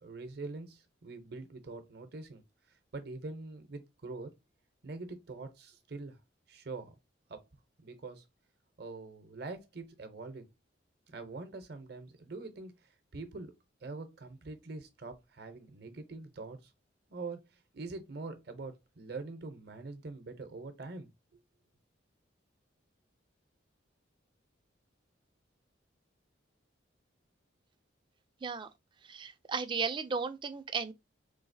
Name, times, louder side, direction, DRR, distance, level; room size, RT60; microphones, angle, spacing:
voice 1, 0.0-2.4 2.9-4.3 4.8-6.2 6.5-7.0 7.3-7.4 7.8-8.2 8.8-10.5 11.1-12.8 13.1-13.5 13.8-16.6 17.1-17.4 17.7-21.1, right 3 dB, 55° right, 0.6 m, -44 dB
voice 2, 29.0-30.9, right 5 dB, 25° right, 0.3 m, -35 dB
3.9 x 2.8 x 2.6 m
head